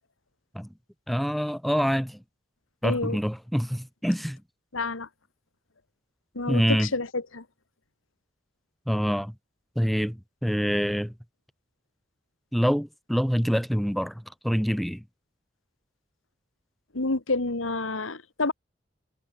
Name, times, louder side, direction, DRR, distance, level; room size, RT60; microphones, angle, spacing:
voice 1, 1.1-2.2 2.8-4.4 6.5-6.9 8.9-9.3 9.8-11.1 12.5-15.0, equal, ahead, 4.0 m, -26 dB
voice 2, 2.8-3.2 4.7-5.1 6.4-7.4 16.9-18.5, left 3 dB, 85° left, 1.8 m, -28 dB
head